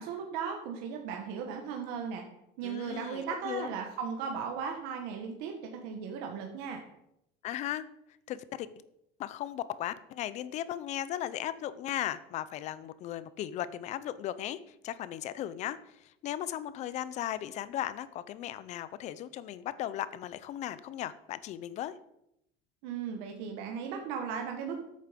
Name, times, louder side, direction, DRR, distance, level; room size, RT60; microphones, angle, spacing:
voice 1, 0.0-2.2 2.6-6.8 22.8-24.8, right 6 dB, 70° right, 3 dB, 1.8 m, -36 dB
voice 2, 2.6-3.7 7.4-7.9 8.3-8.7 9.2-21.9, left 12 dB, 40° left, 15 dB, 0.7 m, -37 dB
13.5 x 8.5 x 5.3 m, 0.80 s
cardioid pair, 170°, 17 cm